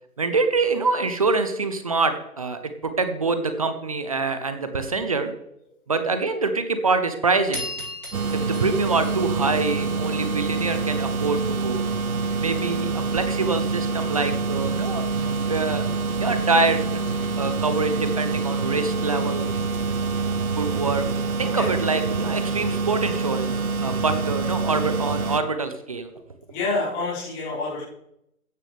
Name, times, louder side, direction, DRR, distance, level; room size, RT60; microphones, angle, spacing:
voice 1, 0.2-5.3 5.9-7.6 8.3-11.8 12.4-15.0 15.5-15.9 16.2-17.0 17.4-19.5 20.6-21.1 21.4-23.5 23.8-26.1, right 3 dB, 25° right, 9 dB, 0.6 m, -25 dB
sound 1, 7.5-10.1, left 1 dB, 90° right, 5.3 m, -36 dB
sound 2, 8.1-25.4, right 4 dB, 70° right, 1.0 m, -26 dB
voice 2, 26.5-27.8, left 3 dB, 20° left, -7 dB, 4.4 m, -28 dB
14.5 x 9.8 x 3.4 m, 0.79 s
figure-of-eight pair, 145°, 45 cm